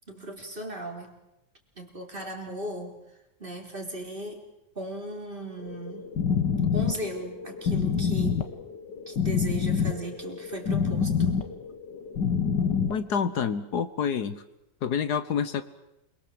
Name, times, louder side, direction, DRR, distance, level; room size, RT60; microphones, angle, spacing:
voice 1, 0.1-1.1 1.8-3.0 3.4-4.4 4.8-6.1 6.7-8.5 9.1-11.4, right 1 dB, 30° right, 2 dB, 4.1 m, -37 dB
sound 1, 5.6-13.0, left 6 dB, 90° left, 2.3 m, -27 dB
voice 2, 12.9-14.4 14.8-15.6, left 7 dB, 70° left, 12 dB, 1.7 m, -28 dB
28.0 x 22.5 x 7.7 m, 0.88 s
omnidirectional pair, 1.8 m